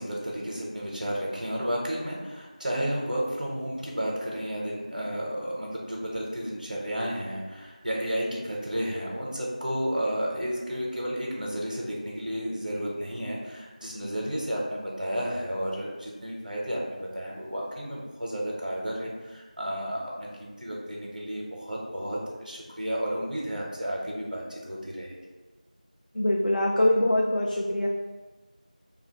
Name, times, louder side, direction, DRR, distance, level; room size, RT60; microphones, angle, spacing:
voice 1, 0.0-25.2, equal, 80° right, -3 dB, 0.8 m, -32 dB
voice 2, 26.1-27.9, left 1 dB, 90° left, -1 dB, 0.4 m, -23 dB
2.9 x 2.4 x 2.8 m, 1.2 s
figure-of-eight pair, 180°, 4 cm